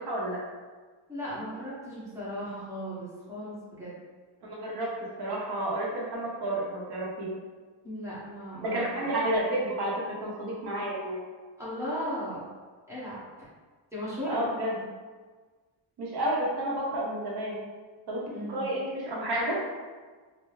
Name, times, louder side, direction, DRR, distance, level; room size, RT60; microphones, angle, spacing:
voice 1, 0.1-0.4 4.5-4.9 5.2-7.3 8.6-11.2 14.3-14.7 16.0-17.6 18.1-19.6, right 1 dB, 55° right, -4 dB, 0.9 m, -31 dB
voice 2, 1.1-3.9 7.8-9.1 11.6-12.5 12.9-13.2 13.9-14.5 18.3-18.6, equal, 5° right, -10 dB, 1.1 m, -36 dB
3.3 x 2.1 x 3.1 m, 1.4 s
wide cardioid pair, 140°, 48 cm